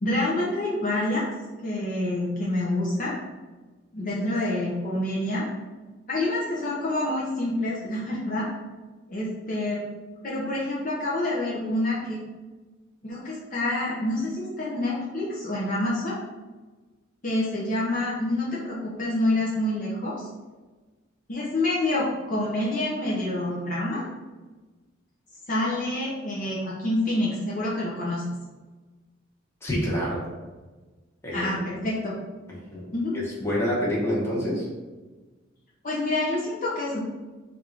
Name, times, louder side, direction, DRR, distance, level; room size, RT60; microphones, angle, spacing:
voice 1, 0.0-1.3 1.6-3.2 3.9-5.5 6.1-8.5 9.1-9.9 10.2-12.2 13.0-16.2 17.2-20.2 21.3-24.0 25.5-28.2 31.3-32.2 32.9-33.2 35.8-37.0, left 1 dB, 40° left, -6 dB, 0.7 m, -27 dB
voice 2, 29.6-30.2 31.2-31.5 32.7-32.8 33.1-34.7, equal, 15° left, -6 dB, 1.1 m, -27 dB
3.4 x 2.6 x 4.5 m, 1.2 s
head